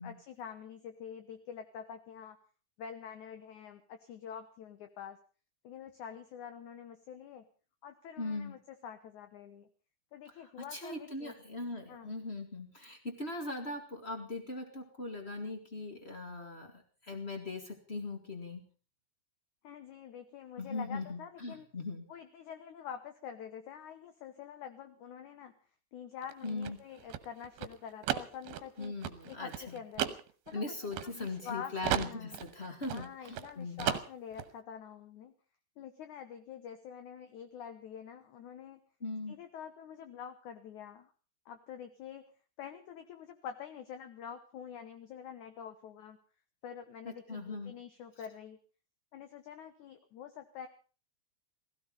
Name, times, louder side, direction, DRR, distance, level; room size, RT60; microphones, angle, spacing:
voice 1, 0.0-2.4 2.8-5.2 5.6-7.5 7.8-9.7 10.1-11.3 11.9-12.1 19.6-21.7 22.1-25.5 25.9-28.9 29.3-30.2 30.5-32.4 32.9-35.3 35.8-38.8 39.3-41.1 41.5-42.3 42.6-46.2 46.6-48.6 49.1-50.7, left 8 dB, 65° left, 9 dB, 2.0 m, -46 dB
voice 2, 8.2-8.6 10.2-18.6 20.6-22.1 26.4-26.8 28.8-29.8 30.5-34.0 39.0-39.4 47.0-47.7, left 2 dB, 30° left, 6 dB, 1.1 m, -40 dB
sound 1, 26.2-31.5 31.8-33.5 33.8-34.5, right 11 dB, 80° right, 2.8 m, -36 dB
16.5 x 16.0 x 5.4 m, 0.38 s
omnidirectional pair, 4.6 m